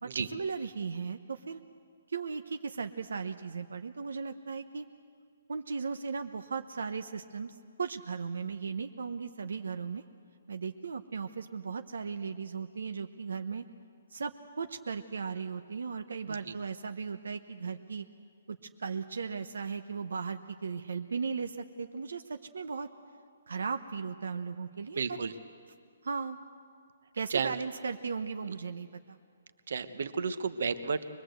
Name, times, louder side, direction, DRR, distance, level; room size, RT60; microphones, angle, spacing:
voice 1, 0.0-1.6 2.1-4.9 5.5-10.0 10.5-13.7 14.1-18.1 18.5-22.9 23.5-25.2 26.0-26.4 27.1-29.2, right 5 dB, 90° right, 7 dB, 0.9 m, -37 dB
voice 2, 24.9-25.3 27.3-27.5 29.7-31.0, right 5 dB, 65° right, 11 dB, 1.2 m, -32 dB
23.5 x 21.0 x 8.1 m, 2.2 s
hypercardioid pair, 170°, 0 cm